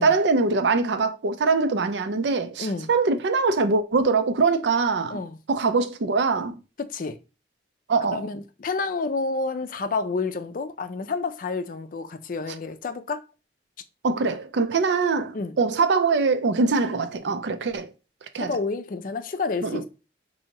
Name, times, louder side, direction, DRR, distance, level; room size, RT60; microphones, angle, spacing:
voice 1, 0.0-5.2 5.5-6.6 7.9-8.3 14.0-17.9 18.3-18.5 19.6-19.9, right 4 dB, 75° right, 0.5 m, -23 dB
voice 2, 2.6-2.9 5.1-5.4 6.8-7.2 8.1-13.2 15.3-15.5 18.4-19.9, left 4 dB, 50° left, 0.4 m, -29 dB
5.3 x 2.7 x 2.9 m
head